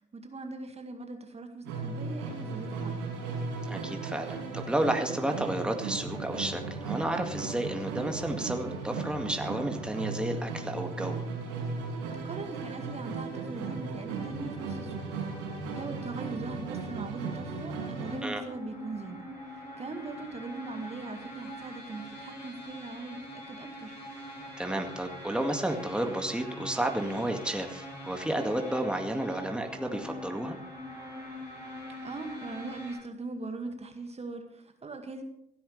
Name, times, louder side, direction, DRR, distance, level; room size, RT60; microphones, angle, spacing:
voice 1, 0.1-3.2 12.2-23.9 32.0-35.2, right 3 dB, 30° right, 5 dB, 2.1 m, -40 dB
Musical instrument, 1.6-18.3, right 4 dB, 75° right, 5.1 m, -36 dB
voice 2, 3.7-11.2 18.2-18.4 24.6-30.6, right 1 dB, 5° right, 4 dB, 2.1 m, -31 dB
sound 1, 17.9-33.0, left 1 dB, 80° left, 6.2 m, -43 dB
28.0 x 10.0 x 3.4 m, 0.75 s
figure-of-eight pair, 50°, 21 cm